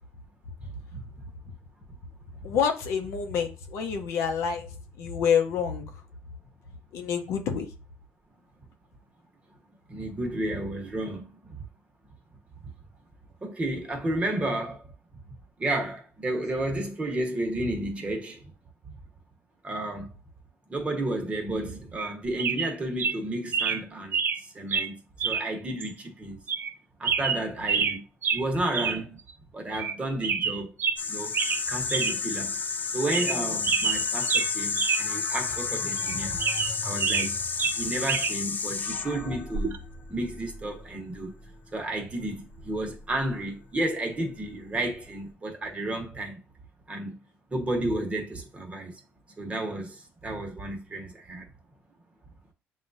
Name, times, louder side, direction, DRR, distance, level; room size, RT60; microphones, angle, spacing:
voice 1, 2.4-4.7 5.0-6.0 6.9-7.7, left 7 dB, 85° left, 0.8 m, -27 dB
voice 2, 9.9-11.3 13.4-14.9 15.6-18.4 19.6-20.1 20.7-24.2 24.5-26.4 27.0-28.0 28.3-29.2 29.5-30.7 31.1-31.4 31.7-32.6 32.9-36.4 36.8-37.4 37.7-39.8 40.1-41.3 41.7-46.4 46.9-47.2 47.5-48.9 49.4-49.9 50.2-51.5, right 1 dB, 25° right, 1.2 m, -32 dB
sound 1, 22.0-22.1 22.4-22.7 23.0-23.2 23.5-23.8 24.1-24.4 24.7-24.9 25.2-25.5 25.8-25.9 26.5-26.7 27.0-28.0 28.2-28.4 28.7-29.0 29.3-29.4 29.7-29.9 30.2-31.0 31.3-31.6 31.9-32.1 32.5-32.6 33.0-33.4 33.6-35.0 35.3-35.4 36.0-37.3 37.6-38.3 39.5-39.8, right 6 dB, 50° right, 0.5 m, -27 dB
sound 2, 31.0-41.5 42.2-43.6, left 5 dB, 40° left, 0.5 m, -31 dB
7.3 x 2.4 x 2.6 m
cardioid pair, 100°, 5 cm